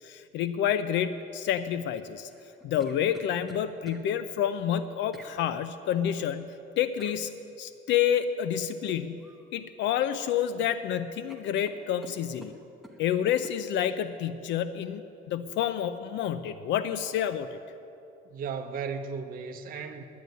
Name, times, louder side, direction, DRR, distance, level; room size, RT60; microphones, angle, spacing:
voice 1, 0.0-2.3 2.6-7.3 7.6-9.3 9.5-12.5 13.0-17.6, left 9 dB, 65° left, 12 dB, 0.6 m, -29 dB
sound 1, 2.3-4.0 5.1-5.3 7.0-7.2 9.2-9.5 9.8-10.5 10.8-10.9 11.3-13.0 13.4-13.6, equal, ahead, 1.0 m, -50 dB
voice 2, 18.2-20.1, right 5 dB, 45° right, 5 dB, 0.9 m, -35 dB
10.5 x 9.4 x 9.4 m, 2.7 s
cardioid pair, 160°, 20 cm